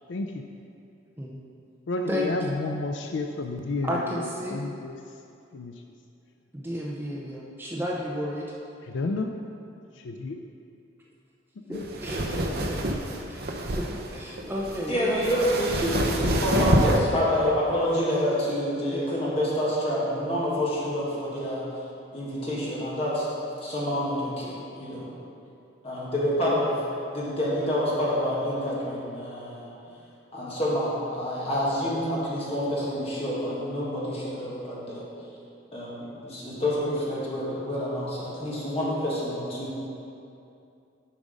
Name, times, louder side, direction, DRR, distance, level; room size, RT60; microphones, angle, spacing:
voice 1, 0.1-0.5 1.9-5.2 5.5-5.8 8.8-9.4 10.0-10.4 11.6-11.8, left 3 dB, 70° left, 4 dB, 0.4 m, -31 dB
voice 2, 3.8-4.6 6.5-8.6 11.7-12.8 13.3-13.4 13.7-15.4 18.9-19.1, equal, 10° right, -4 dB, 0.5 m, -32 dB
sound 1, 11.7-17.0, right 1 dB, 50° right, 0.6 m, -27 dB
voice 3, 14.9-16.0 16.2-21.6 22.1-23.3 23.6-25.1 25.8-26.8 27.1-29.7 30.3-35.0 35.7-39.7, equal, 30° left, -7 dB, 1.8 m, -27 dB
7.1 x 5.0 x 5.3 m, 2.6 s
head